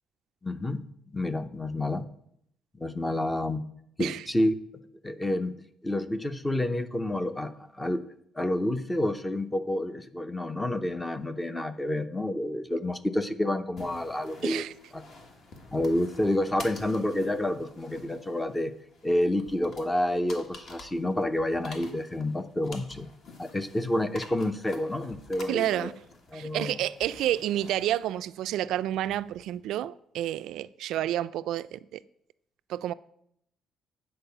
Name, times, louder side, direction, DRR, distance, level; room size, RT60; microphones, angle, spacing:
voice 1, 0.4-0.9 1.1-2.1 2.8-3.6 4.0-4.5 5.0-5.5 5.8-14.6 14.9-15.0 15.7-18.7 19.0-23.1 23.4-25.9 26.3-26.8, left 1 dB, 10° left, 0.5 m, -29 dB
sound 1, 13.8-29.6, left 3 dB, 50° left, 1.4 m, -49 dB
voice 2, 14.4-14.7 25.5-25.9 26.3-32.0 32.7-32.9, right 12 dB, 80° right, 0.3 m, -30 dB
8.6 x 4.6 x 6.8 m
cardioid pair, 160°, 0 cm